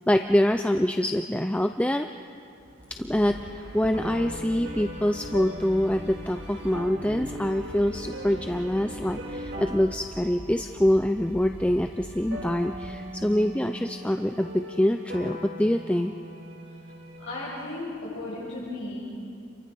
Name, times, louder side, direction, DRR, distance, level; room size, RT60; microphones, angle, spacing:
voice 1, 0.1-2.1 2.9-16.1, left 1 dB, 5° left, 6 dB, 0.5 m, -25 dB
sound 1, 2.6-12.9, equal, 80° right, 3.2 m, -44 dB
sound 2, 3.2-17.8, equal, 55° right, 2.6 m, -40 dB
voice 2, 17.2-19.0, left 2 dB, 70° left, -8 dB, 6.5 m, -35 dB
29.5 x 23.5 x 5.4 m, 2.5 s
head